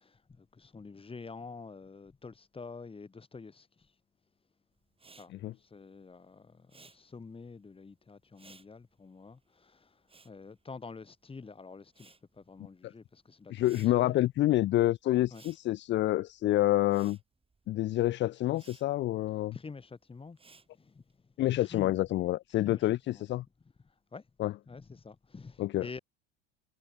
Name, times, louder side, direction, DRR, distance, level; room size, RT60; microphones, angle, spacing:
voice 1, 0.0-3.9 5.2-14.2 15.3-15.4 19.5-20.4 20.7-22.0 22.6-23.3 23.8-24.3 24.7-26.0, left 4 dB, 15° left, 2.4 m, -48 dB
Respiratory sounds, 4.9-11.4 11.7-21.1, right 4 dB, 15° right, 7.7 m, -61 dB
voice 2, 13.5-17.2 17.7-19.6 21.4-23.4 24.4-24.5 25.6-25.9, left 15 dB, 30° left, 0.5 m, -28 dB
hypercardioid pair, 95°, 36 cm